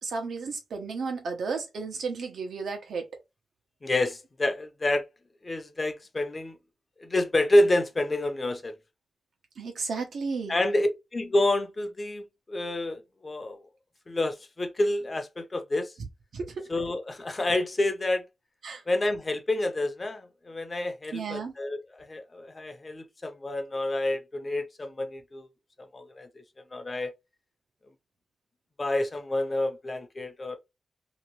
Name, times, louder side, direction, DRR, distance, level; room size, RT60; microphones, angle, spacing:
voice 1, 0.0-3.1 9.6-10.6 16.3-16.7 18.6-18.8 21.1-21.5, right 4 dB, 80° right, 1.0 m, -33 dB
voice 2, 3.8-5.0 5.4-6.6 7.0-8.7 10.5-12.2 12.5-13.6 14.1-15.9 16.7-18.2 18.9-25.5 25.9-26.4 26.7-27.1 28.8-30.6, left 1 dB, 30° left, 0.7 m, -28 dB
3.0 x 3.0 x 3.0 m
wide cardioid pair, 130°, 0 cm